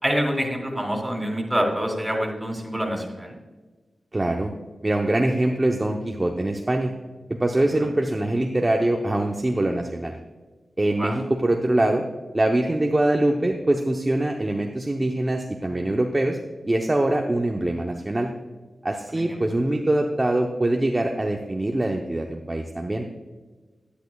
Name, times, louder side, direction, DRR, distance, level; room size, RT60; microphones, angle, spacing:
voice 1, 0.0-3.4 7.7-7.9 11.0-11.2 19.1-19.4, equal, 5° right, 0 dB, 3.1 m, -26 dB
voice 2, 4.1-4.5 4.8-6.9 7.3-10.1 10.8-12.0 12.3-16.4 16.6-18.3 18.8-23.1, right 1 dB, 30° right, 2 dB, 0.8 m, -23 dB
10.5 x 9.9 x 2.3 m, 1.3 s
cardioid pair, 50°, 0 cm